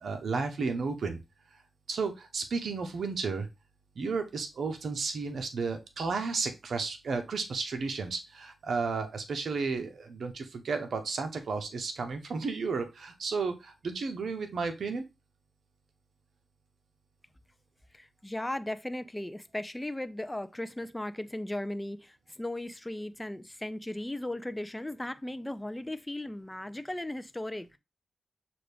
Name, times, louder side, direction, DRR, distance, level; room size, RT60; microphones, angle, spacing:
voice 1, 0.0-1.2 1.9-3.5 4.0-15.0, right 4 dB, 75° right, 0.7 m, -33 dB
voice 2, 17.9-27.8, left 1 dB, 15° left, 0.5 m, -37 dB
6.0 x 2.5 x 3.4 m
cardioid pair, 60°, 0 cm